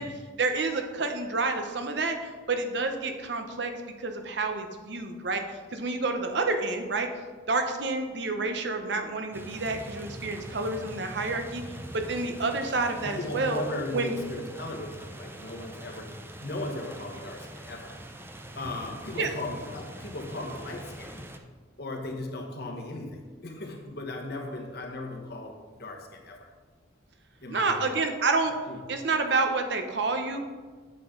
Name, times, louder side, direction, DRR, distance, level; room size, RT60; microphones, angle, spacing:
voice 1, 0.4-3.7 4.0-5.4 5.7-7.1 7.5-11.6 11.9-13.6 13.9-14.1 19.2-19.3 27.5-28.5 28.9-30.4, right 3 dB, 65° right, 5 dB, 0.9 m, -29 dB
sound 1, 9.3-21.4, right 1 dB, 10° right, 0.6 m, -43 dB
voice 2, 13.0-17.9 18.6-21.3 21.8-26.5 27.4-28.0 28.7-28.8, left 2 dB, 60° left, 2 dB, 1.4 m, -37 dB
8.8 x 8.1 x 3.9 m, 1.5 s
head